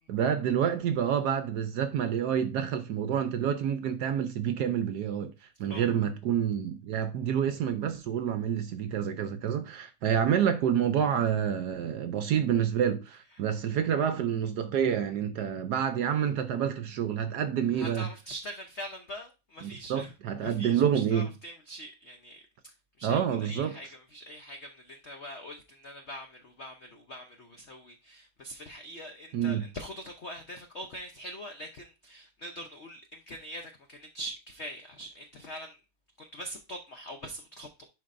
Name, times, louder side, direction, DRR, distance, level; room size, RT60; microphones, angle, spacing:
voice 1, 0.1-5.3 5.6-18.1 19.6-21.3 23.0-23.7 29.3-29.6, right 8 dB, 70° right, 1.0 m, -28 dB
voice 2, 17.7-35.8 36.2-37.9, equal, 70° left, 0.6 m, -43 dB
10.5 x 4.6 x 2.5 m
omnidirectional pair, 2.2 m